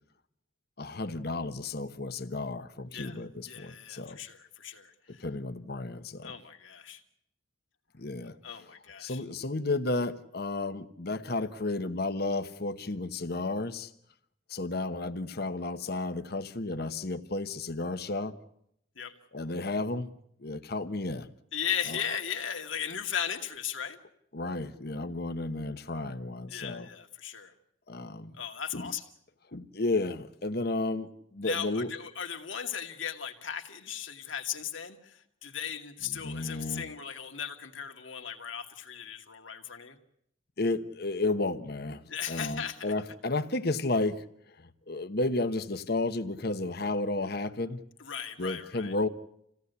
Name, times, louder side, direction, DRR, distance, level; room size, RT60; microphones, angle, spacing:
voice 1, 0.8-4.2 5.1-6.3 8.0-8.6 9.0-13.9 14.5-18.4 19.3-20.1 20.4-21.3 21.9-22.0 24.3-26.9 27.9-28.4 28.7-28.9 29.5-31.9 36.1-36.9 40.6-42.0 42.3-44.2 44.6-47.8 48.4-49.1, left 2 dB, 55° left, 1.1 m, -32 dB
voice 2, 3.5-5.3 6.2-7.0 8.4-9.2 19.0-19.1 21.5-24.0 26.5-27.5 28.3-29.0 31.4-40.0 42.1-42.9 48.0-48.9, left 8 dB, 85° left, 2.3 m, -37 dB
27.5 x 17.0 x 8.2 m
head